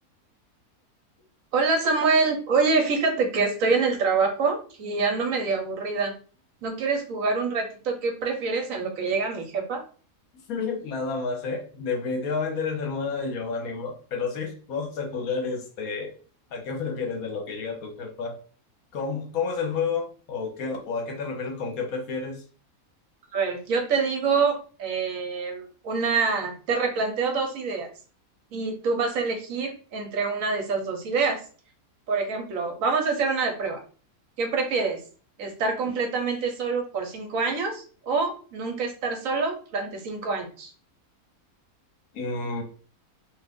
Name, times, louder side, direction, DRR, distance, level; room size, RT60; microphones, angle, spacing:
voice 1, 1.5-6.1 6.6-9.8 23.3-27.9 28.5-31.4 32.1-33.8 34.4-35.0 35.4-40.7, right 4 dB, 65° right, 4 dB, 1.0 m, -26 dB
voice 2, 10.5-16.1 16.5-18.4 18.9-22.4 42.1-42.6, left 4 dB, 70° left, 3 dB, 1.2 m, -30 dB
2.7 x 2.4 x 3.4 m, 0.40 s
omnidirectional pair, 1.6 m